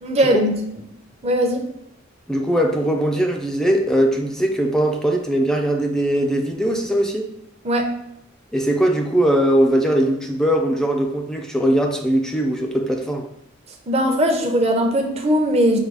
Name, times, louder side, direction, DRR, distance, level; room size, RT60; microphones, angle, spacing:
voice 1, 0.0-0.5 1.2-1.6 7.6-7.9 13.9-15.8, equal, 30° right, 0.6 m, -19 dB
voice 2, 2.3-7.3 8.5-13.3, right 1 dB, 5° left, 0.3 m, -20 dB
4.8 x 2.3 x 4.8 m
head